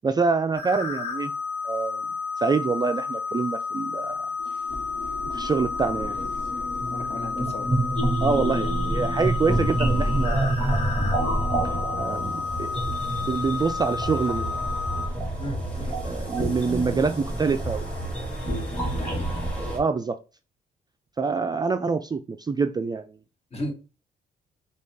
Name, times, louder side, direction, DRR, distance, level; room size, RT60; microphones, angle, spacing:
voice 1, 0.0-1.3 1.6-2.0 2.4-4.3 5.3-6.3 8.2-10.7 11.9-12.3 12.6-14.7 16.0-17.9 19.6-20.2 21.2-23.1, right 4 dB, 20° right, 7 dB, 0.3 m, -26 dB
sound 1, 0.5-15.1, left 5 dB, 75° left, 1.1 m, -31 dB
sound 2, 4.4-19.8, right 1 dB, 10° left, 2.4 m, -28 dB
voice 2, 6.9-7.8 15.4-16.0 19.0-19.3 23.5-23.7, left 1 dB, 35° left, 3 dB, 1.5 m, -35 dB
5.1 x 2.4 x 3.3 m, 0.32 s
supercardioid pair, 65°, 18 cm